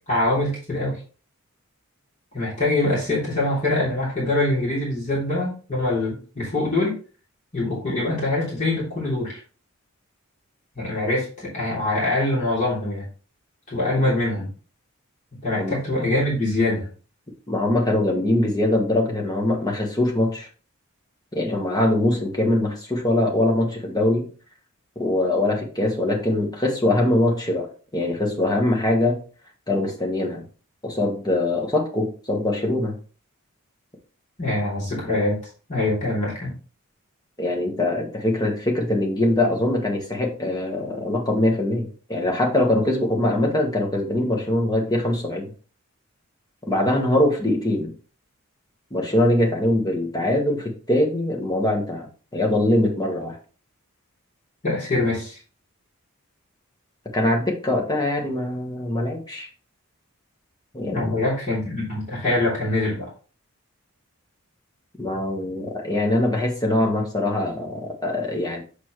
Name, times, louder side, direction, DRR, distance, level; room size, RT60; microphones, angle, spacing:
voice 1, 0.1-1.0 2.3-7.0 7.5-9.4 10.7-13.1 13.7-14.5 15.4-16.9 34.4-35.4 35.7-36.5 54.6-55.4 60.8-63.1, left 2 dB, 35° left, -7 dB, 3.3 m, -24 dB
voice 2, 17.5-20.5 21.3-24.3 24.9-29.2 29.7-30.4 30.8-33.0 37.4-45.5 46.7-47.9 48.9-53.4 57.1-59.5 60.7-61.2 65.0-68.6, left 1 dB, 15° left, 0 dB, 1.3 m, -22 dB
7.0 x 5.1 x 3.1 m, 0.38 s
head